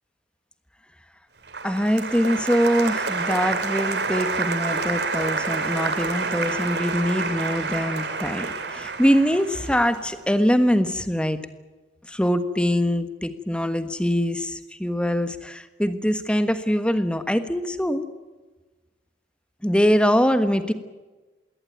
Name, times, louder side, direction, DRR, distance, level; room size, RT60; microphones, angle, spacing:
Applause, 1.5-10.6, right 4 dB, 65° right, 2.6 m, -28 dB
voice 1, 1.6-11.4 12.1-18.0 19.6-20.7, equal, 5° left, 10 dB, 1.4 m, -23 dB
21.5 x 18.0 x 9.3 m, 1.2 s
head